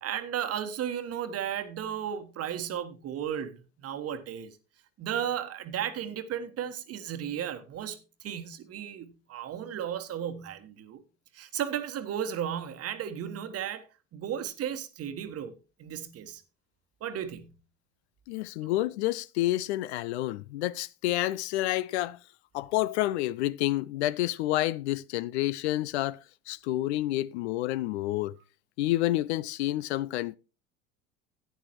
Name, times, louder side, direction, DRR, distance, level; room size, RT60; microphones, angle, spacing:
voice 1, 0.0-4.6 5.0-11.0 11.3-15.5 15.8-16.4 17.0-17.5 18.6-18.7, right 9 dB, 40° right, 1.2 m, -34 dB
voice 2, 18.3-22.2 22.5-26.2 26.5-28.3 28.8-30.4, left 16 dB, 65° left, 0.4 m, -29 dB
12.5 x 9.2 x 3.0 m
figure-of-eight pair, 65°, 37 cm